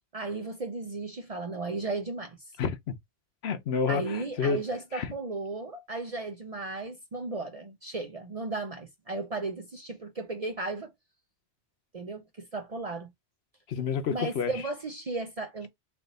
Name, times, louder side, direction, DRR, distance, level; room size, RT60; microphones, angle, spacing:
voice 1, 0.1-2.4 3.9-10.9 11.9-13.1 14.1-15.7, right 3 dB, 40° right, 0.6 m, -35 dB
voice 2, 2.6-2.9 3.4-4.6 4.9-5.1 13.7-14.5, left 6 dB, 70° left, 1.0 m, -29 dB
3.4 x 2.7 x 3.9 m
omnidirectional pair, 1.2 m